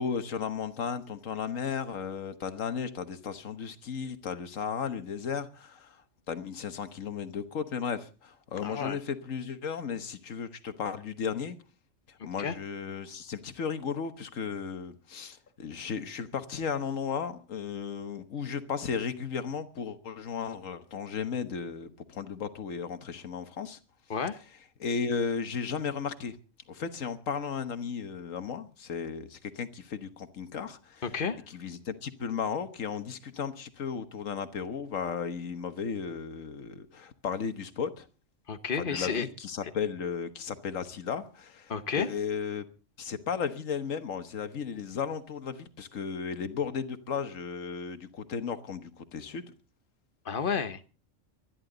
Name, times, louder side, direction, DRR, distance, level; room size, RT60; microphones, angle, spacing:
voice 1, 0.0-6.0 6.3-11.6 12.1-23.8 24.8-26.4 26.7-31.0 31.5-38.1 38.7-42.6 43.0-49.5, left 6 dB, 85° left, 1.6 m, -35 dB
voice 2, 8.6-9.0 12.2-12.6 24.1-24.4 31.0-31.4 38.5-39.3 41.7-42.1 50.2-50.8, left 6 dB, 45° left, 1.1 m, -31 dB
24.5 x 11.0 x 3.9 m
omnidirectional pair, 1.3 m